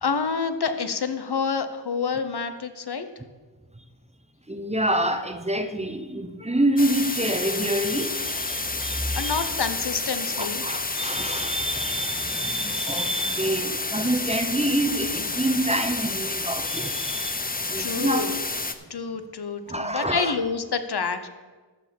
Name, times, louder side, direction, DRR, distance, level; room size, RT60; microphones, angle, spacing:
voice 1, 0.0-3.1 9.1-10.6 12.7-12.9 17.8-18.4 18.9-21.3, left 5 dB, 60° left, 9 dB, 0.9 m, -28 dB
voice 2, 4.5-9.5 10.4-18.3 19.7-20.3, right 1 dB, 15° right, 8 dB, 0.9 m, -27 dB
sound 1, 6.8-18.7, left 3 dB, 20° left, 0.7 m, -30 dB
13.5 x 5.1 x 5.9 m, 1.3 s
cardioid pair, 45°, 45 cm